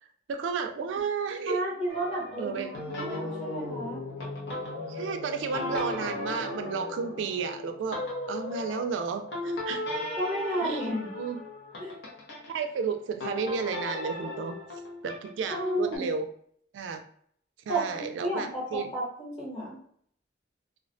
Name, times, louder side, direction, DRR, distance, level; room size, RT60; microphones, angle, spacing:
voice 1, 0.3-1.6 2.4-2.7 4.9-8.0 8.3-9.8 10.6-10.9 11.2-11.4 12.5-14.6 15.0-16.3 16.7-17.0 17.7-18.9, right 5 dB, 90° right, 7 dB, 0.3 m, -32 dB
voice 2, 1.4-4.0 10.1-11.1 11.8-11.9 15.5-16.1 17.7-19.8, right 1 dB, 30° left, -5 dB, 1.0 m, -32 dB
sound 1, 1.9-12.5 13.2-16.0, left 2 dB, 65° left, 0.7 m, -36 dB
2.3 x 2.1 x 2.5 m, 0.62 s
head